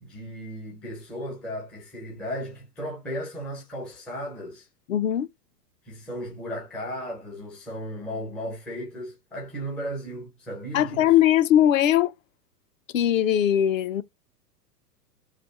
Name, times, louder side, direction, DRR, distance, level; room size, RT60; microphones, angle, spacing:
voice 1, 0.0-4.7 5.8-11.1, equal, ahead, 0.3 m, -35 dB
voice 2, 4.9-5.3 10.7-12.1 12.9-14.0, left 11 dB, 55° left, 0.6 m, -20 dB
3.4 x 2.3 x 4.0 m
figure-of-eight pair, 105°, 48 cm